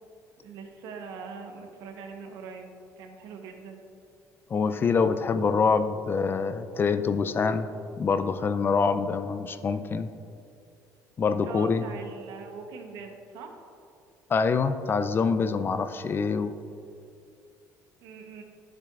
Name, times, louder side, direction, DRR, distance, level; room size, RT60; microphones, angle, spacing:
voice 1, 0.4-3.8 11.4-13.6 18.0-18.4, right 5 dB, 80° right, 4 dB, 0.9 m, -42 dB
voice 2, 4.5-7.7 8.0-10.1 11.2-11.8 14.3-16.5, left 5 dB, 35° left, 11 dB, 0.4 m, -25 dB
9.8 x 7.4 x 2.4 m, 2.4 s
cardioid pair, 100°, 7 cm